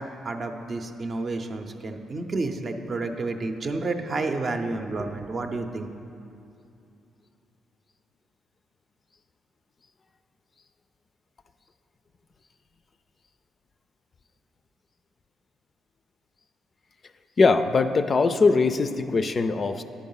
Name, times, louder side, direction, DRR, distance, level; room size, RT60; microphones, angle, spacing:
voice 1, 0.0-5.9, right 3 dB, 45° right, 5 dB, 0.6 m, -30 dB
voice 2, 17.4-19.8, left 4 dB, 40° left, 9 dB, 0.4 m, -21 dB
10.5 x 4.6 x 5.5 m, 2.6 s
cardioid pair, 90°, 0 cm